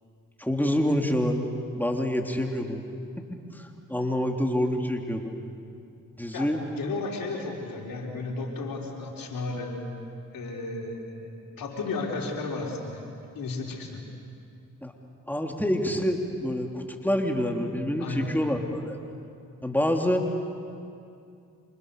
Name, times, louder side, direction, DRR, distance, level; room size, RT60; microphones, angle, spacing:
voice 1, 0.4-1.4 1.7-2.8 3.3-5.3 6.2-6.6 14.8-14.9 15.3-19.0 19.6-20.2, equal, 5° left, 2 dB, 3.7 m, -27 dB
voice 2, 6.8-9.8 10.3-11.3 11.6-13.0 13.3-14.0 18.0-18.3, left 3 dB, 80° left, 0 dB, 3.9 m, -33 dB
30.0 x 27.0 x 6.9 m, 2.5 s
supercardioid pair, 40°, 34 cm